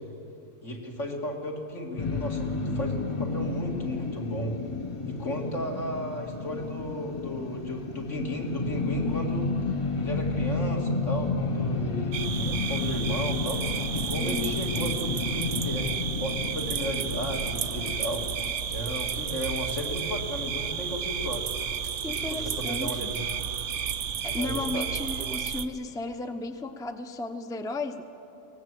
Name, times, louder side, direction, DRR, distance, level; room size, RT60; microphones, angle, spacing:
voice 1, 0.6-4.6 5.1-9.5 10.0-13.6 13.9-15.9 16.2-21.5 22.1-23.4 24.3-24.9, equal, 75° left, 0 dB, 3.1 m, -34 dB
sound 1, 2.0-19.2, left 3 dB, 30° left, 0.8 m, -31 dB
sound 2, 12.1-25.7, right 7 dB, 70° right, 1.1 m, -32 dB
voice 2, 14.2-14.6 22.0-23.2 24.2-28.0, left 2 dB, 5° left, 7 dB, 0.7 m, -34 dB
23.5 x 18.5 x 7.7 m, 2.6 s
omnidirectional pair, 1.3 m